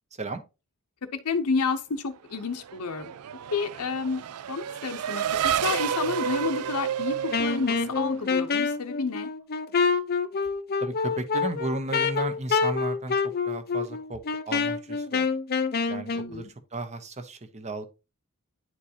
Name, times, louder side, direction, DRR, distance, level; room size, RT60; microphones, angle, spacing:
voice 1, 0.1-0.4 10.8-15.3 15.9-17.9, right 2 dB, 30° right, 0.9 m, -34 dB
voice 2, 1.1-3.1 3.5-4.2 4.5-5.2 5.6-9.3 16.1-16.5, left 4 dB, 90° left, 0.7 m, -30 dB
Race car auto racing / Accelerating revving vroom, 2.4-8.5, right 9 dB, 80° right, 0.4 m, -30 dB
Wind instrument woodwind instrument, 7.3-16.3, left 5 dB, 45° left, 0.6 m, -27 dB
9.8 x 4.6 x 2.7 m
head